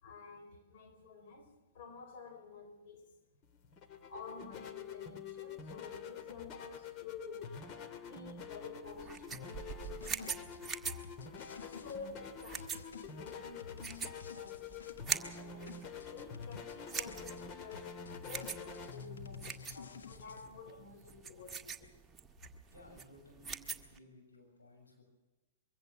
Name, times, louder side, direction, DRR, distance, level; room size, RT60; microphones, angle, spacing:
voice 1, 0.0-3.1 4.1-7.7 8.0-11.1 11.6-14.0 14.3-14.7 15.0-15.7 15.9-17.9 18.2-21.9, left 5 dB, 55° left, 3.9 m, -50 dB
sound 1, 3.4-21.7, left 6 dB, 35° left, 1.9 m, -47 dB
sound 2, 8.9-24.0, right 6 dB, 15° right, 1.5 m, -44 dB
sound 3, 9.5-12.0 12.6-15.4 15.7-17.5 17.7-20.4, left 5 dB, 70° left, 1.4 m, -52 dB
voice 2, 15.3-15.8 22.7-25.0, left 1 dB, 90° left, 6.6 m, -59 dB
23.0 x 16.0 x 7.5 m
figure-of-eight pair, 110°, 0 cm